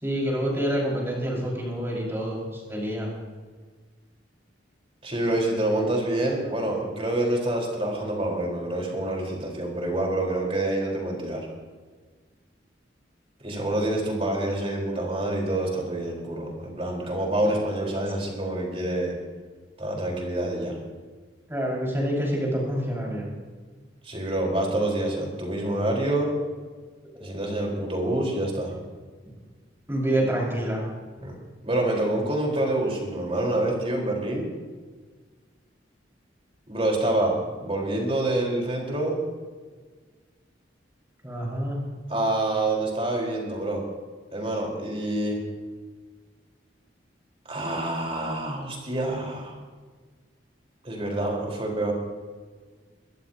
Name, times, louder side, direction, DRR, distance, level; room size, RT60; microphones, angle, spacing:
voice 1, 0.0-3.1 17.4-17.5 21.5-23.3 27.1-27.4 29.9-30.9 41.2-41.9, equal, 15° right, -4 dB, 5.3 m, -27 dB
voice 2, 5.0-11.5 13.4-19.1 19.8-20.8 24.0-26.3 27.2-28.7 31.2-31.3 31.6-34.5 36.7-37.3 37.6-39.2 42.1-43.8 44.3-45.4 47.5-49.5 50.8-51.9, right 1 dB, 30° right, -1 dB, 4.3 m, -27 dB
23.5 x 15.5 x 2.9 m, 1.5 s
head